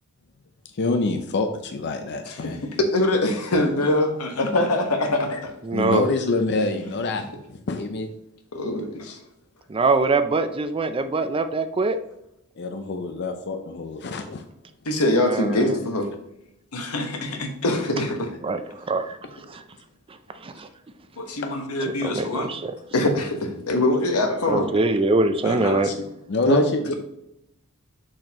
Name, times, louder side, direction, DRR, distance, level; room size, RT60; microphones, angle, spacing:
voice 1, 0.7-2.6 5.7-7.2 7.5-8.1 12.6-14.4 21.4-21.5 26.3-26.9, left 3 dB, 50° left, 6 dB, 0.5 m, -26 dB
voice 2, 2.3-5.5 6.6-6.9 8.5-9.2 14.8-16.1 16.7-18.3 21.2-22.5 22.9-24.9 25.4-26.1 26.5-26.6, left 1 dB, 80° left, 4 dB, 1.2 m, -24 dB
voice 3, 5.6-6.1 9.7-12.0 15.3-15.8 18.4-19.2 19.5-19.6 20.4-20.7 22.0-22.7 24.5-25.9, right 3 dB, 25° right, 10 dB, 0.4 m, -23 dB
6.5 x 6.4 x 2.9 m, 0.82 s
head